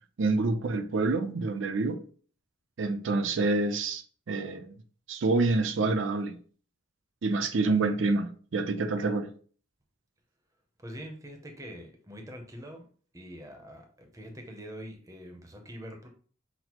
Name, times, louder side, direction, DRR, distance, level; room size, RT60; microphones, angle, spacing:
voice 1, 0.2-2.0 2.8-4.8 5.1-6.4 7.2-9.3, right 3 dB, 65° right, 0.5 m, -27 dB
voice 2, 10.8-12.9 13.1-16.1, equal, 15° right, 0.6 m, -44 dB
5.9 x 2.0 x 2.9 m
head